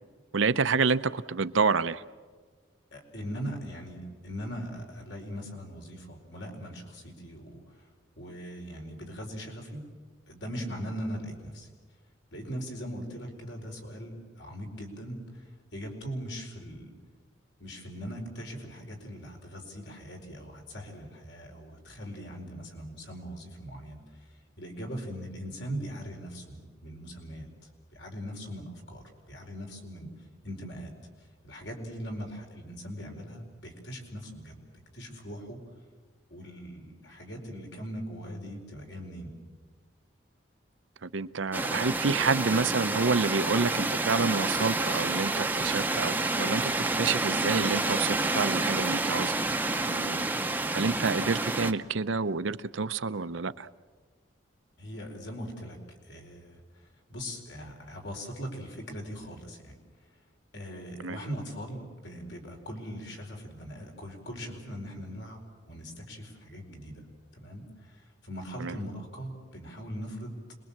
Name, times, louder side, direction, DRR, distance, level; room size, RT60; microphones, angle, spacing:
voice 1, 0.3-2.0 41.0-49.3 49.9-50.2 50.7-53.7 61.0-61.2 68.6-68.7, right 4 dB, 85° right, 14 dB, 0.7 m, -28 dB
voice 2, 2.9-7.9 8.2-9.8 10.3-11.7 12.3-16.9 17.6-27.5 27.9-30.1 30.4-35.6 36.3-39.3 54.8-59.8 60.5-67.1 67.4-70.4, equal, 70° left, 2 dB, 4.7 m, -40 dB
sound 1, 41.5-51.7, right 2 dB, 10° right, 0.7 m, -29 dB
26.5 x 21.5 x 7.3 m, 1.4 s
head